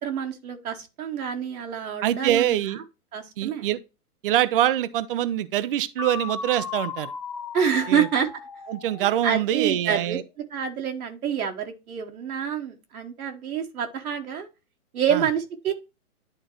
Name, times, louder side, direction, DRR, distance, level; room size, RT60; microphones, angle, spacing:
voice 1, 0.0-2.6 3.1-3.7 7.5-8.3 9.0-10.2 10.5-14.5 14.9-15.7, right 8 dB, 70° right, 1.4 m, -27 dB
voice 2, 2.0-2.8 3.4-3.8 4.2-7.1 7.9-8.1 8.7-10.2 15.1-15.3, right 12 dB, 40° right, 0.5 m, -24 dB
sound 1, 6.0-9.8, left 7 dB, 25° left, 0.4 m, -36 dB
11.0 x 3.7 x 3.1 m
hypercardioid pair, 140°, 45 cm